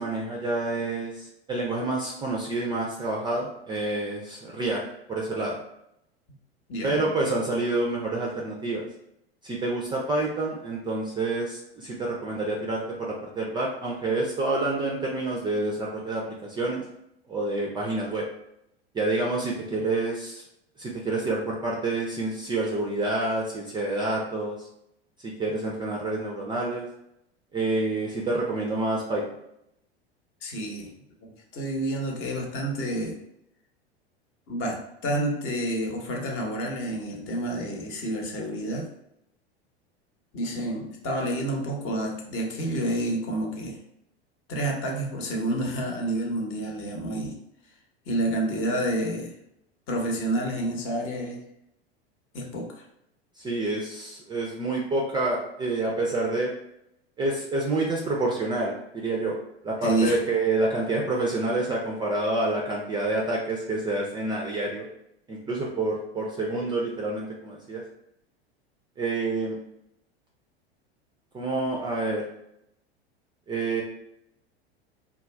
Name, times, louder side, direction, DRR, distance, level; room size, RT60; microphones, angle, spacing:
voice 1, 0.0-4.8 5.1-5.6 6.8-8.9 9.4-16.8 17.3-18.3 18.9-20.4 20.8-24.7 25.2-26.9 27.5-29.2 53.4-56.5 57.2-59.4 59.6-64.9 65.3-67.8 69.0-69.6 71.3-72.2 73.5-73.8, right 2 dB, 15° right, -2 dB, 0.4 m, -28 dB
voice 2, 6.7-7.1 30.4-30.9 31.5-33.2 34.5-38.9 40.3-43.8 44.5-47.4 48.1-49.3 49.9-51.4 52.3-52.8 59.8-60.2, right 1 dB, 40° left, 0 dB, 0.8 m, -29 dB
2.3 x 2.2 x 3.1 m, 0.80 s
hypercardioid pair, 85°, 32 cm